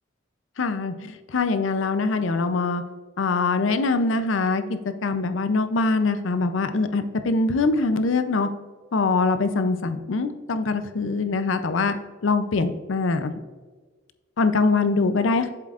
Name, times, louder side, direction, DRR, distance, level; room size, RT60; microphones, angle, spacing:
voice 1, 0.6-2.8 3.2-8.5 8.9-11.9 12.2-13.3 14.4-15.5, left 3 dB, 85° left, 10 dB, 0.5 m, -23 dB
7.6 x 7.4 x 2.5 m, 1.4 s
head